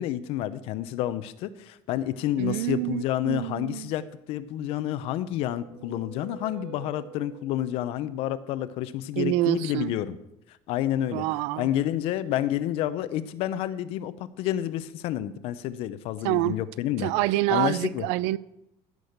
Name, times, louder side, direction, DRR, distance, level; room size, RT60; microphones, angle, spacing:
voice 1, 0.0-10.2 10.7-11.2 11.6-17.1 17.5-18.1, left 12 dB, 60° left, 0.8 m, -29 dB
voice 2, 2.4-3.9 9.2-9.9 11.1-11.7 16.2-16.6 17.0-18.4, right 16 dB, 90° right, 0.5 m, -27 dB
sound 1, 5.0-7.9, right 8 dB, 40° right, 2.3 m, -47 dB
16.0 x 6.3 x 6.6 m
cardioid pair, 155°, 11 cm